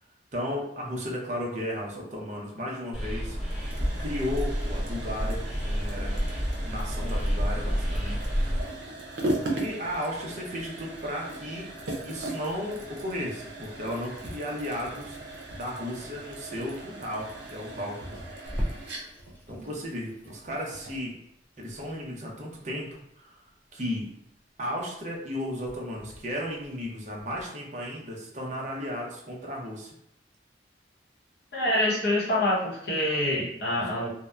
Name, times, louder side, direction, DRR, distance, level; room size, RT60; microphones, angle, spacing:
voice 1, 0.3-3.4 4.0-6.2 6.6-8.2 9.5-11.7 12.0-15.2 15.5-18.1 19.5-21.2 21.6-23.3 23.7-24.1 24.6-29.9 33.8-33.9, equal, 40° right, -2 dB, 0.6 m, -34 dB
sound 1, 2.9-8.6, equal, 5° right, 0.7 m, -29 dB
sound 2, 3.4-21.1, right 1 dB, 85° right, 0.6 m, -38 dB
Water tap faucet / Sink (filling or washing), 18.5-27.4, equal, 10° left, 0.3 m, -41 dB
voice 2, 31.5-34.1, left 1 dB, 65° left, -5 dB, 0.8 m, -26 dB
2.7 x 2.1 x 2.3 m, 0.76 s
head